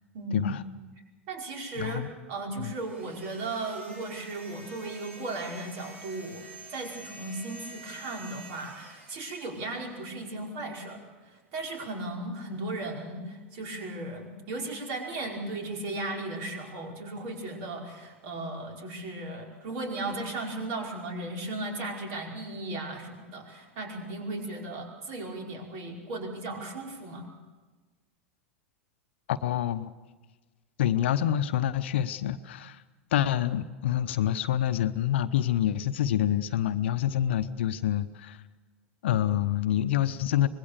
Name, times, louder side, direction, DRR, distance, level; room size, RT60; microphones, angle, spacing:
voice 1, 0.1-0.6 1.3-2.0 2.3-11.0 11.3-27.3, right 2 dB, 50° right, 1 dB, 5.1 m, -36 dB
voice 2, 1.8-2.1 2.6-2.7 29.3-29.9 30.8-32.8 33.1-38.4 39.0-40.5, left 11 dB, 65° left, 12 dB, 1.0 m, -27 dB
sound 1, 2.7-10.1, right 2 dB, 75° right, 5.4 m, -48 dB
25.5 x 20.5 x 6.8 m, 1.3 s
figure-of-eight pair, 90°, 7 cm